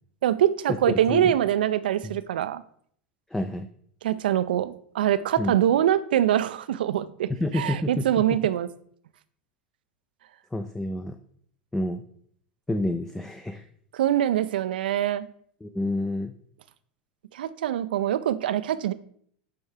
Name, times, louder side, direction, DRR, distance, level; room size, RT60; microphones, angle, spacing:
voice 1, 0.2-2.6 4.0-8.7 13.9-15.3 17.3-18.9, right 11 dB, 75° right, 0.3 m, -24 dB
voice 2, 3.3-3.7 5.4-5.5 7.4-8.0 10.5-11.2 11.7-12.0 12.7-13.6 15.6-16.3, left 1 dB, 5° left, 0.4 m, -28 dB
8.6 x 3.5 x 3.3 m
hypercardioid pair, 90°, 5 cm